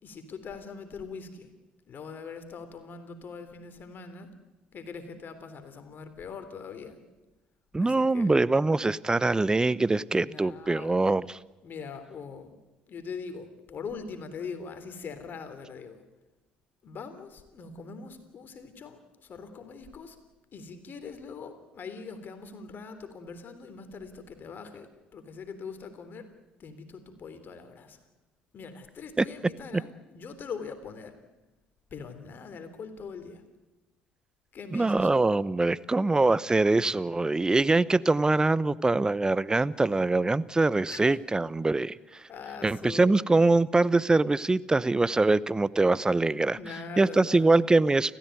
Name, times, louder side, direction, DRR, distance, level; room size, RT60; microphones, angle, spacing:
voice 1, 0.0-1.5 1.9-4.3 4.7-7.0 7.8-8.4 10.2-11.0 11.6-12.6 12.9-16.0 16.8-20.2 20.5-24.9 25.1-26.3 26.6-28.0 28.5-31.1 31.9-33.4 34.5-35.3 40.9-41.2 42.3-43.2 46.5-47.7, left 5 dB, 45° left, 9 dB, 3.6 m, -42 dB
voice 2, 7.7-11.4 29.2-29.3 34.7-42.0 42.6-46.6 47.0-48.2, right 3 dB, 15° right, 20 dB, 0.8 m, -23 dB
29.5 x 14.5 x 9.3 m, 1.1 s
figure-of-eight pair, 55°, 5 cm